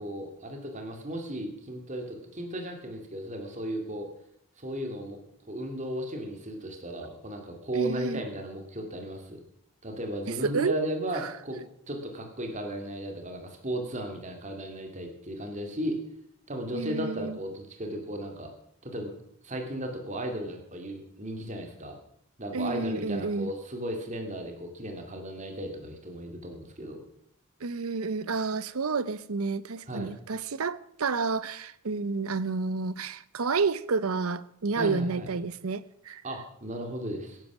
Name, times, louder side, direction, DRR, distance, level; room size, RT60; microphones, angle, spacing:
voice 1, 0.0-4.1 4.6-5.2 5.5-9.4 9.8-11.6 11.9-16.0 16.5-18.5 18.8-19.1 19.4-22.0 22.4-27.0 29.9-30.1 34.7-35.3 36.2-37.4, right 1 dB, 35° right, 4 dB, 2.3 m, -35 dB
voice 2, 7.7-8.2 10.3-10.9 11.2-11.3 16.7-17.4 22.5-23.5 27.6-36.2, right 4 dB, 80° right, 17 dB, 0.7 m, -30 dB
16.5 x 10.5 x 6.1 m, 0.72 s
head